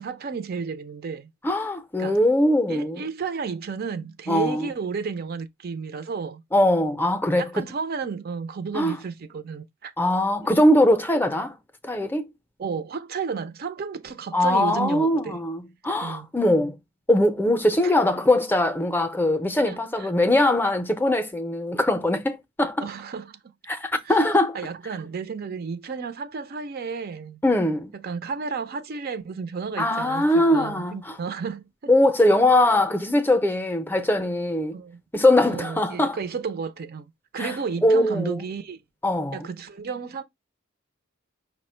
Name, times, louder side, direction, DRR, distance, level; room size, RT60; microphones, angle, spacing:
voice 1, 0.0-1.3 2.0-2.2 2.7-6.4 7.4-9.9 10.4-10.5 12.6-15.4 16.0-16.3 17.8-17.9 19.6-20.1 22.8-23.4 24.0-24.2 24.5-27.4 27.9-31.9 34.7-35.0 35.5-38.8 39.3-40.2, right 5 dB, 50° right, 0.4 m, -32 dB
voice 2, 1.4-3.0 4.3-4.7 6.5-7.6 8.7-9.0 10.0-11.6 11.8-12.2 14.3-16.7 17.1-22.8 23.7-24.6 27.4-27.9 29.8-31.0 31.9-34.7 35.1-36.2 37.4-37.5 37.8-38.4 39.0-39.5, left 1 dB, 10° left, 0.5 m, -21 dB
5.6 x 2.1 x 4.3 m
head